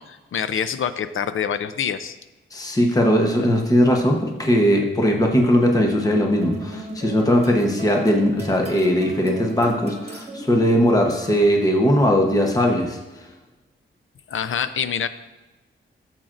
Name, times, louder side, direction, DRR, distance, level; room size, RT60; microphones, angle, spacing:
voice 1, 0.0-2.2 14.3-15.1, left 7 dB, 75° left, 12 dB, 0.5 m, -26 dB
voice 2, 2.5-13.0, equal, 15° left, 1 dB, 0.9 m, -19 dB
sound 1, 6.4-11.8, right 1 dB, 30° right, 1.5 m, -37 dB
13.5 x 7.5 x 2.5 m, 1.1 s
wide cardioid pair, 165°, 21 cm